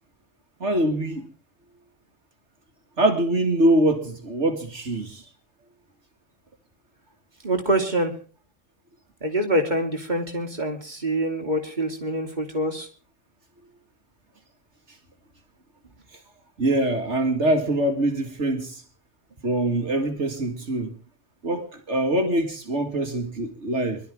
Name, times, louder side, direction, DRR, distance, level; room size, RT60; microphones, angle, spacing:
voice 1, 0.6-1.3 3.0-5.2 16.6-18.8 19.4-21.0 21.4-24.0, right 1 dB, 65° right, 2.4 m, -23 dB
voice 2, 7.4-8.1 9.2-12.9, right 1 dB, 35° right, 3.2 m, -25 dB
24.5 x 13.0 x 3.5 m
omnidirectional pair, 1.3 m